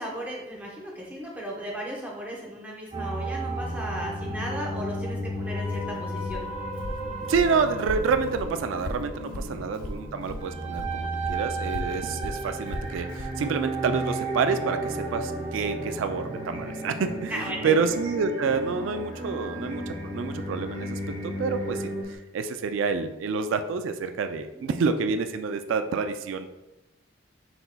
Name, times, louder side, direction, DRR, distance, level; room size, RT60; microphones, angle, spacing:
voice 1, 0.0-6.5 9.3-9.6 17.3-17.8 24.5-24.7, equal, 10° right, -4 dB, 0.9 m, -36 dB
sound 1, 2.9-22.0, right 1 dB, 30° right, 0.6 m, -33 dB
Walk footsteps, 5.7-10.5 10.7-13.4, left 1 dB, 45° left, 0.4 m, -37 dB
voice 2, 7.3-21.9 22.3-26.5, right 5 dB, 85° right, 8 dB, 0.3 m, -28 dB
sound 2, 12.6-22.2, right 1 dB, 70° left, 1.4 m, -49 dB
5.9 x 3.9 x 2.2 m, 1.0 s
head